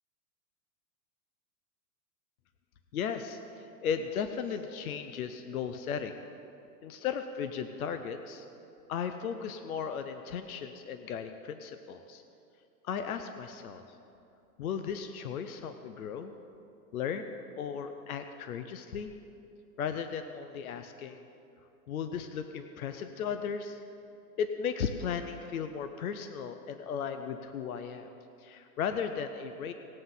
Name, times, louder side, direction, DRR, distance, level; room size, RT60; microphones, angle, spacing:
voice 1, 2.9-6.2 6.8-8.5 8.9-12.2 12.8-13.8 14.6-16.4 16.9-19.1 19.8-21.2 21.9-23.8 24.4-28.1 28.4-29.7, left 7 dB, 60° left, 8 dB, 0.7 m, -36 dB
19.0 x 7.7 x 3.9 m, 2.7 s
supercardioid pair, 180°, 49 cm